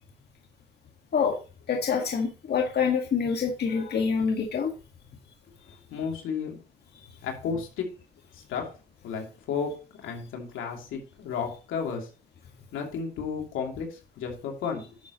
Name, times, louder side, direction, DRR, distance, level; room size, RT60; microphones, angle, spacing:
voice 1, 1.7-4.7, left 6 dB, 55° left, 1 dB, 1.8 m, -26 dB
voice 2, 5.9-6.6 7.2-7.8 8.3-8.6 9.0-9.7 10.0-12.1 12.7-14.8, left 6 dB, 85° left, 1 dB, 2.9 m, -33 dB
11.5 x 7.2 x 3.0 m, 0.34 s
cardioid pair, 90°, 20 cm